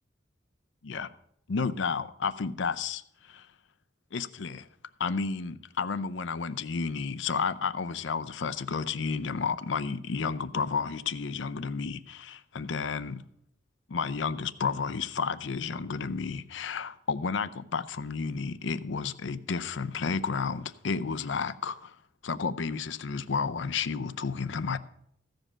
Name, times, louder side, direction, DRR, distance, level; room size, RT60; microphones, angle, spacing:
voice 1, 1.5-3.5 4.1-4.7 5.0-13.2 13.9-22.0 22.2-24.8, left 5 dB, 75° left, 0.6 m, -31 dB
15.0 x 5.2 x 7.3 m
head